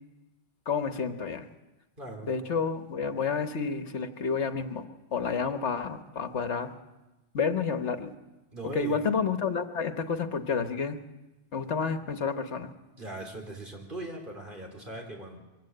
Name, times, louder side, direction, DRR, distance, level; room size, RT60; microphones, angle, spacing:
voice 1, 0.7-1.5 2.3-4.8 5.1-6.7 7.3-8.1 8.6-11.0 11.5-12.7, left 5 dB, 70° left, 8 dB, 1.5 m, -30 dB
voice 2, 2.0-2.3 8.5-9.0 13.0-15.4, right 2 dB, 45° right, 1 dB, 4.0 m, -39 dB
23.0 x 17.0 x 7.9 m, 1.0 s
omnidirectional pair, 1.2 m